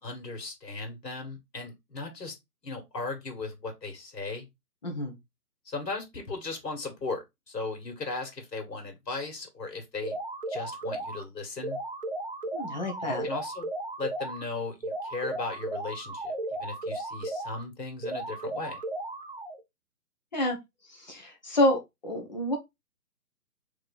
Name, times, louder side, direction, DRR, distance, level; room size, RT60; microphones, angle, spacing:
voice 1, 0.0-2.3 2.6-4.5 5.7-10.2 10.5-11.8 13.0-13.7 14.0-16.3 16.6-18.8, left 3 dB, 90° left, 1.9 m, -37 dB
voice 2, 4.8-5.2 12.5-13.3 20.3-20.6 20.9-22.6, left 1 dB, 30° left, 0.9 m, -28 dB
sound 1, 10.0-11.2 11.6-14.4 14.8-17.6 18.0-19.6, right 2 dB, 35° right, 0.4 m, -35 dB
3.4 x 3.2 x 4.0 m
hypercardioid pair, 160°, 48 cm